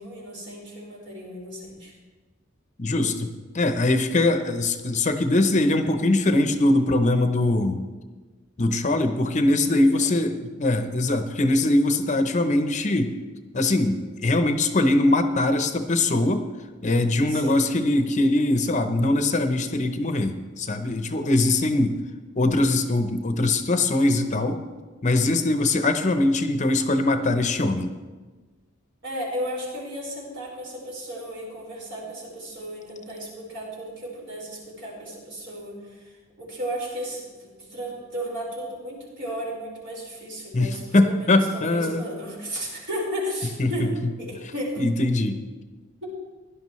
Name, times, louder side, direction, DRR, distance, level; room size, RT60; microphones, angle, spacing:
voice 1, 0.0-1.9 9.7-10.2 17.3-17.6 29.0-35.8 36.4-43.9 44.2-44.8 46.0-46.1, equal, 65° right, -4 dB, 4.7 m, -34 dB
voice 2, 2.8-3.3 3.5-7.8 8.6-13.1 13.5-16.5 16.8-22.0 22.4-24.6 25.0-27.9 40.5-42.0 43.6-43.7 44.8-45.4, left 2 dB, 35° left, 7 dB, 0.7 m, -22 dB
16.5 x 11.5 x 3.1 m, 1.3 s
head